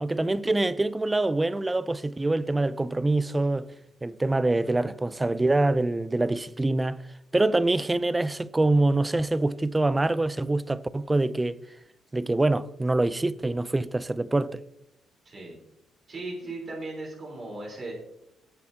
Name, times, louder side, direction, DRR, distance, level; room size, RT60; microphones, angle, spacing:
voice 1, 0.0-3.7 4.0-7.0 7.3-11.6 12.1-14.6, right 2 dB, 15° right, 0.6 m, -25 dB
voice 2, 15.2-15.6 16.1-17.9, right 2 dB, 45° right, 4.1 m, -37 dB
19.5 x 8.5 x 2.9 m
cardioid pair, 90°, 0 cm